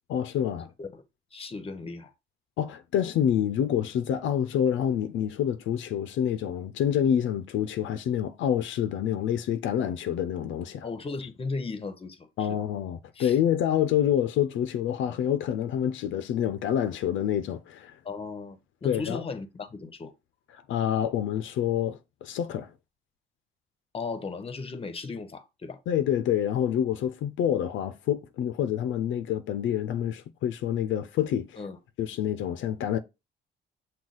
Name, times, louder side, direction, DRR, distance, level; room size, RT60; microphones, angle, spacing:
voice 1, 0.1-0.7 2.6-10.9 12.4-18.0 18.8-19.2 20.5-22.7 25.9-31.6 32.0-33.0, left 9 dB, 75° left, 0.4 m, -27 dB
voice 2, 1.3-2.1 10.8-12.6 13.1-13.4 18.0-20.1 23.9-25.8 31.6-31.8, left 4 dB, 30° left, 0.7 m, -36 dB
6.1 x 2.3 x 3.8 m
cardioid pair, 90°, 20 cm